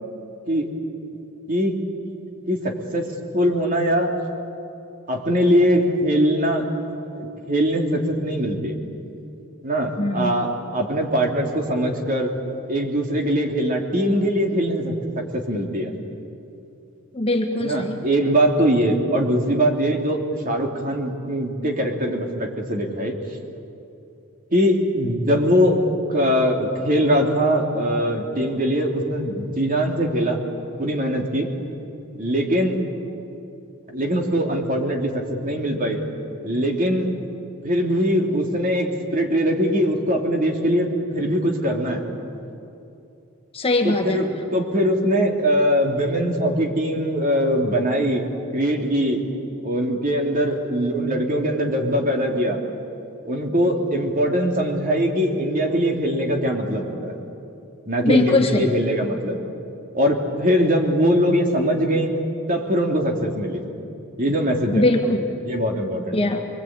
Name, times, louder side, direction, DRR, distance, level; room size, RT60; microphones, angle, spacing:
voice 1, 2.5-3.1 3.3-4.1 5.1-6.7 7.1-8.8 9.6-12.3 12.7-15.0 15.3-15.9 17.6-23.1 24.5-25.8 26.1-30.4 30.8-31.5 32.2-32.8 33.9-36.0 36.4-37.1 37.6-40.9 41.1-42.1 43.8-48.2 48.5-49.2 49.6-52.6 53.2-57.2 57.9-59.4 59.9-62.1 62.5-63.6 64.2-64.8 65.4-66.2, equal, 40° right, 1 dB, 3.2 m, -21 dB
voice 2, 10.0-10.4 17.1-18.0 43.5-44.3 58.0-58.7 64.7-65.3 66.1-66.5, left 2 dB, 25° left, 3 dB, 1.6 m, -21 dB
27.0 x 23.0 x 9.0 m, 2.8 s
head